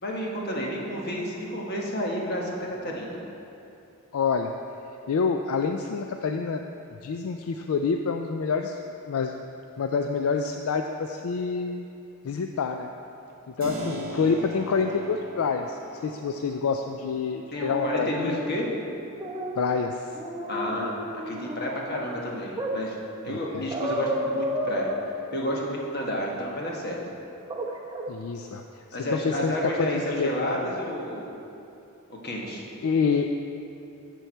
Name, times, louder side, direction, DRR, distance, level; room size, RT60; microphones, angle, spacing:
voice 1, 0.0-3.2 17.5-18.7 20.5-23.0 23.2-24.9 25.3-27.0 28.9-31.3 32.2-32.7, equal, 45° left, -2 dB, 1.3 m, -31 dB
voice 2, 4.1-4.5 5.1-6.6 7.0-8.8 9.0-9.4 9.8-11.9 12.2-12.9 13.5-18.4 19.6-20.2 23.3-23.7 28.1-28.8 29.1-30.7 32.8-33.3, left 5 dB, 70° left, 5 dB, 0.4 m, -27 dB
Keyboard (musical), 13.6-22.2, right 1 dB, 40° right, 1.4 m, -42 dB
sound 1, 17.6-18.6 19.2-19.7 20.2-22.0 22.6-22.8 23.7-24.8 27.5-27.7 27.9-28.0, equal, 20° right, 0.7 m, -32 dB
13.5 x 4.6 x 4.5 m, 2.8 s
head